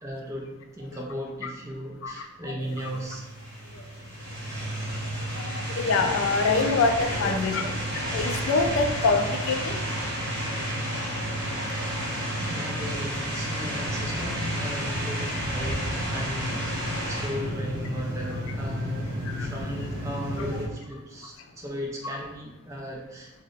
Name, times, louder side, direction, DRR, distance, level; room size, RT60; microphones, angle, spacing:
voice 1, 0.0-3.2 7.2-7.3 12.4-23.4, equal, 15° right, -1 dB, 0.3 m, -36 dB
voice 2, 2.0-2.6 3.7-3.9 5.3-7.6 8.1-9.8 19.3-19.5 20.1-20.2 22.0-22.2, left 3 dB, 70° left, 6 dB, 0.3 m, -25 dB
sound 1, 2.6-20.7, equal, 50° right, 1.1 m, -31 dB
2.5 x 2.0 x 3.8 m, 1.1 s
head